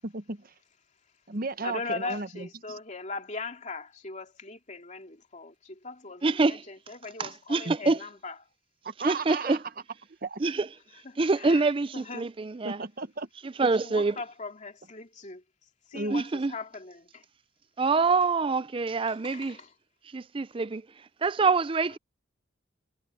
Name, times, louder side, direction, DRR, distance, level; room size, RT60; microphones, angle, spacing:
voice 1, 0.0-0.5 1.3-2.8 7.6-7.8 8.8-9.6 10.2-10.4 12.6-13.3 15.9-16.2, right 3 dB, 50° right, 1.0 m, -34 dB
voice 2, 1.6-8.4 10.9-12.3 13.8-15.4 15.9-17.2 19.1-19.7, left 3 dB, 40° left, 2.7 m, -40 dB
voice 3, 6.2-6.6 7.2-8.0 9.0-9.6 10.4-10.7 11.2-12.8 13.4-14.1 16.1-16.5 17.8-19.6 20.1-20.8 21.2-22.0, right 3 dB, 25° right, 0.4 m, -25 dB
head